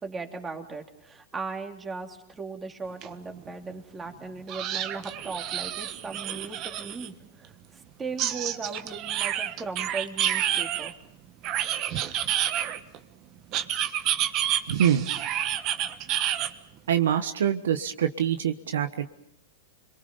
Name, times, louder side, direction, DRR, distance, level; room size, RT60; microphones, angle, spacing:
voice 1, 0.0-10.9, right 4 dB, 15° right, 3 dB, 3.1 m, -38 dB
sound 1, 3.0-3.1 3.5-3.6 4.5-7.1 8.2-10.9 11.4-13.0 13.5-16.5, right 11 dB, 40° right, 1.4 m, -29 dB
voice 2, 14.7-15.1 16.9-19.2, right 9 dB, 75° right, 9 dB, 1.2 m, -25 dB
30.0 x 23.0 x 5.4 m, 0.73 s
hypercardioid pair, 110°, 0 cm